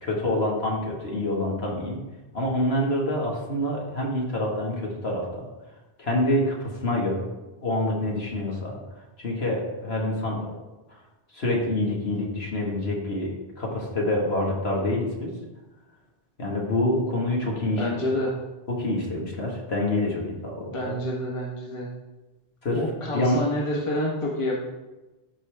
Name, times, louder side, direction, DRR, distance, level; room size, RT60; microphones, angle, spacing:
voice 1, 0.0-2.0 2.3-5.5 6.0-7.1 7.6-10.5 10.9-11.0 11.3-15.3 16.4-18.0 18.7-20.8 22.6-22.8 23.1-23.4, left 1 dB, 65° left, -2 dB, 2.1 m, -26 dB
voice 2, 17.8-18.3 20.7-21.9 22.7-24.5, left 1 dB, 25° left, -3 dB, 1.5 m, -28 dB
13.5 x 5.0 x 3.5 m, 1.1 s
omnidirectional pair, 1.2 m